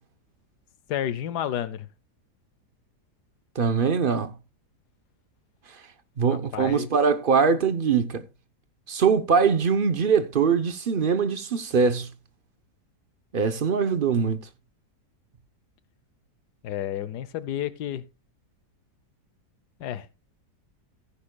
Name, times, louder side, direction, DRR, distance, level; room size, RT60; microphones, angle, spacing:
voice 1, 0.9-1.9 6.3-6.9 16.6-18.0 19.8-20.1, left 11 dB, 80° left, 1.3 m, -31 dB
voice 2, 3.6-4.3 6.2-8.2 8.9-12.1 13.3-14.4, right 6 dB, 50° right, 0.7 m, -22 dB
15.0 x 9.7 x 2.2 m
omnidirectional pair, 1.8 m